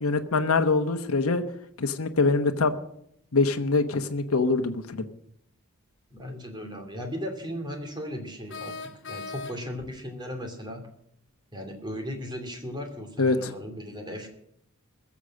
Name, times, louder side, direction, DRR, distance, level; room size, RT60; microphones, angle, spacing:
voice 1, 0.0-1.4 1.8-2.7 3.3-5.0 13.2-13.5, left 3 dB, 85° left, 7 dB, 1.0 m, -24 dB
voice 2, 6.1-10.8 11.5-14.3, equal, 20° right, 4 dB, 2.8 m, -37 dB
sound 1, 6.2-6.3 8.5-9.9, left 4 dB, 60° left, 1.2 m, -39 dB
21.5 x 7.3 x 6.4 m, 0.73 s
head